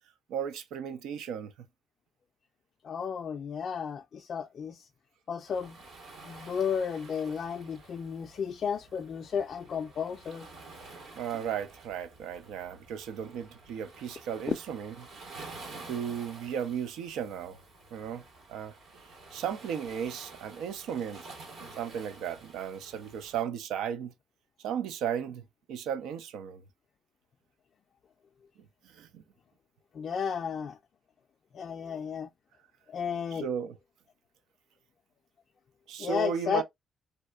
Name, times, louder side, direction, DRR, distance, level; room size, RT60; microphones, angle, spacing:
voice 1, 0.3-1.5 11.2-14.9 15.9-17.6 17.9-18.2 18.5-18.7 19.3-21.3 21.8-24.1 24.6-26.6 28.9-29.2 33.3-33.8 35.9-36.6, right 8 dB, 90° right, 0.5 m, -35 dB
voice 2, 2.8-4.9 5.3-5.8 6.2-10.5 29.9-30.8 31.5-32.3 32.9-33.5 36.0-36.6, left 7 dB, 55° left, 0.3 m, -33 dB
Waves surf, 5.5-23.5, right 3 dB, 70° right, 1.6 m, -50 dB
3.3 x 2.7 x 2.3 m
cardioid pair, 90°, 0 cm